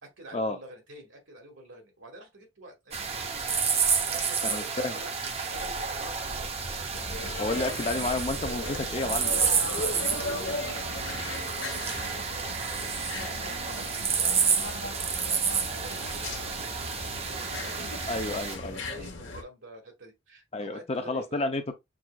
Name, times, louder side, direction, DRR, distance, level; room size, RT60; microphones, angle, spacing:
voice 1, 0.0-8.2 8.6-8.8 9.3-9.5 9.8-21.5, right 1 dB, 80° right, 2.0 m, -48 dB
sound 1, 2.9-18.6, right 6 dB, 30° right, 0.6 m, -30 dB
voice 2, 4.4-4.9 7.4-9.3 10.1-10.2 18.1-18.8 20.5-21.7, left 2 dB, 30° left, 0.5 m, -31 dB
sound 2, 6.9-19.4, left 2 dB, 75° left, 1.0 m, -38 dB
6.1 x 3.1 x 2.3 m
head